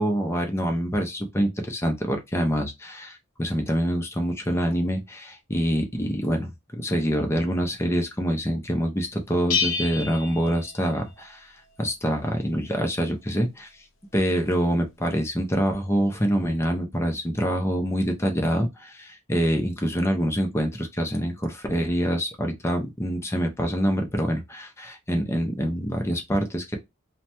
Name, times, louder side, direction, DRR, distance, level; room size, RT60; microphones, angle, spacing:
voice 1, 0.0-11.5 11.8-13.7 14.1-26.8, equal, 15° left, 0.6 m, -26 dB
Bell, 9.5-11.3, left 5 dB, 75° left, 0.5 m, -29 dB
3.2 x 2.1 x 2.8 m
head